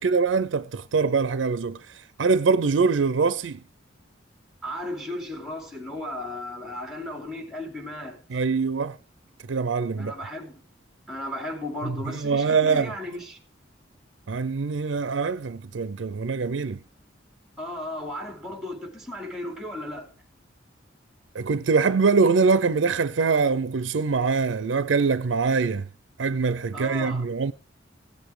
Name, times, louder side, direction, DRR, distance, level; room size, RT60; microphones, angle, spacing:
voice 1, 0.0-3.6 8.3-9.0 9.5-10.1 11.8-12.9 14.3-16.8 21.3-25.9 26.2-27.5, right 4 dB, 90° right, 0.5 m, -23 dB
voice 2, 4.6-8.4 10.0-10.6 11.1-13.4 17.6-20.1 26.7-27.3, left 1 dB, ahead, 3.1 m, -35 dB
16.0 x 8.1 x 4.9 m
head